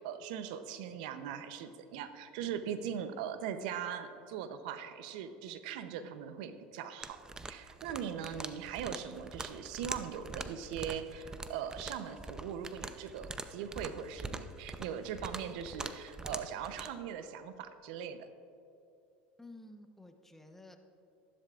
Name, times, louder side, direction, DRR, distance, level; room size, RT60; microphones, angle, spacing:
voice 1, 0.0-7.2 7.4-18.3, right 8 dB, 80° right, 10 dB, 0.7 m, -40 dB
sound 1, 7.0-16.9, right 3 dB, 15° right, 0.6 m, -44 dB
voice 2, 19.4-20.8, left 2 dB, 5° left, 5 dB, 1.0 m, -52 dB
14.0 x 12.0 x 2.5 m, 2.7 s
supercardioid pair, 105°, 4 cm